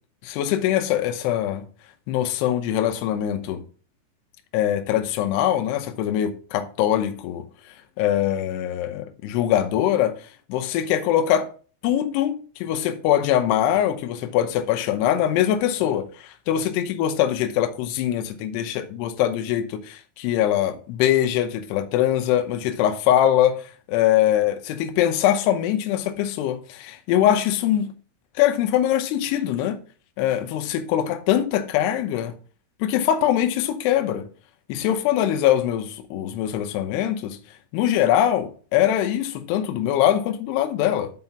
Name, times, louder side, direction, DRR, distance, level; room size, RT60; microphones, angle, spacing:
voice 1, 0.2-1.6 2.1-3.6 4.5-7.4 8.0-10.1 10.5-11.5 11.8-27.9 28.4-29.8 30.2-32.3 32.8-34.3 34.7-37.4 37.7-41.1, left 11 dB, 80° left, 2.4 m, -22 dB
7.6 x 4.4 x 5.7 m
omnidirectional pair, 5.9 m